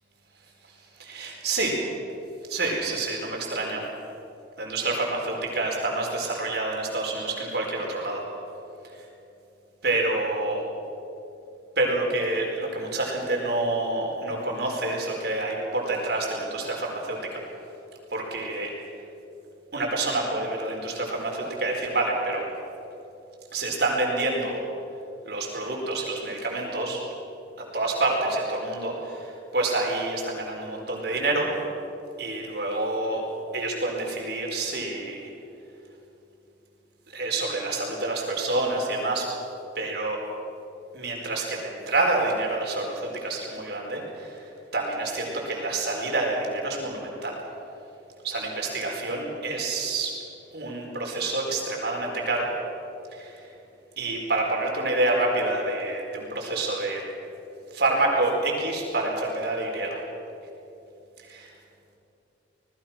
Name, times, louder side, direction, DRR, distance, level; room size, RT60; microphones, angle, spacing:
voice 1, 1.0-1.7 2.5-3.8 4.6-8.2 9.8-10.6 11.8-17.4 18.1-18.7 19.7-22.5 23.5-24.6 25.2-27.0 27.6-31.5 32.2-33.2 33.5-35.3 37.1-39.3 39.7-40.2 40.9-44.4 44.7-47.4 48.2-50.1 50.5-52.5 53.1-53.4 54.0-57.0 57.7-60.0 61.3-61.5, right 2 dB, 65° right, -1 dB, 4.8 m, -27 dB
26.5 x 20.0 x 6.0 m, 2.8 s
head